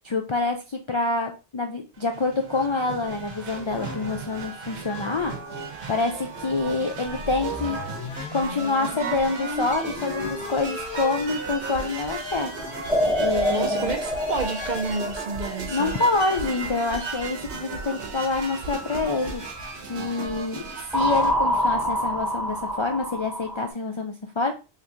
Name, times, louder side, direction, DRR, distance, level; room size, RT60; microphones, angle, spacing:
voice 1, 0.0-5.3 5.9-7.8 8.3-12.5 13.2-13.9 15.7-19.4 19.9-20.6 20.9-24.5, left 3 dB, 50° left, 4 dB, 0.3 m, -27 dB
sound 1, 1.9-21.3, right 3 dB, 85° right, 1.2 m, -35 dB
sound 2, 7.0-14.8, left 3 dB, 65° left, 1.1 m, -36 dB
sound 3, 12.9-16.1 20.9-23.7, equal, ahead, 0.7 m, -26 dB
voice 2, 13.5-16.0, right 4 dB, 50° right, 5 dB, 0.6 m, -30 dB
3.9 x 3.1 x 2.7 m, 0.30 s
omnidirectional pair, 1.1 m